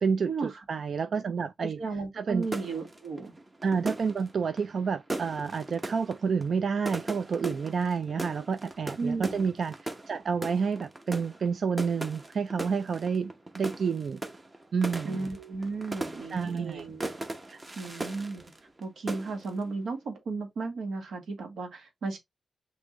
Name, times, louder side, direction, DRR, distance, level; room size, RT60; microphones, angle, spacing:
voice 1, 0.0-1.8 2.1-2.5 3.6-14.2 14.7-15.3 16.3-16.9 17.5-17.6, right 5 dB, 60° right, 0.3 m, -29 dB
voice 2, 1.6-3.3 9.0-9.5 15.0-17.1 17.7-18.4 18.8-22.2, right 3 dB, 85° right, 1.5 m, -34 dB
sound 1, 2.4-18.8 19.1-19.6, right 2 dB, 25° right, 0.8 m, -39 dB
6.1 x 2.7 x 2.9 m
wide cardioid pair, 110°, 0 cm